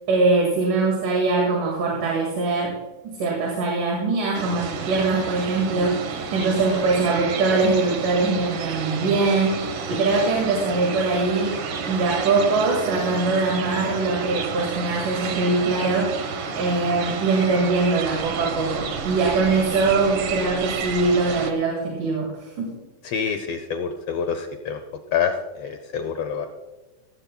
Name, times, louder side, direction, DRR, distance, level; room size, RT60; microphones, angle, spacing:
voice 1, 0.1-2.8 3.0-16.3 16.6-22.7, right 3 dB, 80° right, -2 dB, 3.5 m, -22 dB
sound 1, 4.3-21.5, right 5 dB, 60° right, 1.6 m, -31 dB
voice 2, 23.0-24.8 25.1-26.5, left 6 dB, 75° left, 8 dB, 1.4 m, -27 dB
16.0 x 15.0 x 2.3 m, 1.2 s
omnidirectional pair, 3.6 m